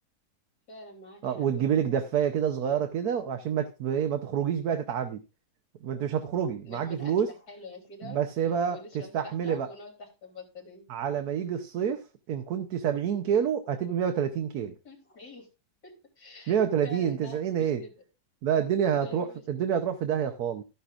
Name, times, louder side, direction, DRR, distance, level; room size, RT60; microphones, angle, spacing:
voice 1, 0.7-2.0 6.6-8.2 8.7-10.9 14.8-15.5 15.8-16.5 16.8-17.9 18.9-19.7, left 2 dB, 85° left, 0 dB, 4.0 m, -46 dB
voice 2, 1.2-5.2 5.8-7.3 8.0-8.8 9.1-9.7 10.9-14.7 16.5-17.8 18.4-20.6, right 8 dB, 85° right, 7 dB, 1.3 m, -28 dB
13.0 x 11.0 x 2.5 m, 0.28 s
omnidirectional pair, 1.6 m